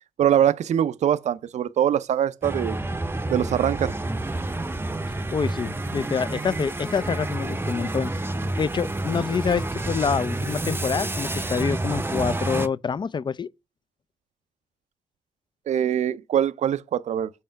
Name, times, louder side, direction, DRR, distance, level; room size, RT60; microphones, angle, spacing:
voice 1, 0.2-2.8 3.3-3.9 15.7-17.3, right 10 dB, 70° right, 0.4 m, -23 dB
sound 1, 2.4-12.7, right 2 dB, 20° right, 0.6 m, -29 dB
voice 2, 5.1-8.1 8.6-13.5, left 6 dB, 40° left, 0.4 m, -26 dB
5.6 x 4.3 x 4.5 m
supercardioid pair, 40°, 12 cm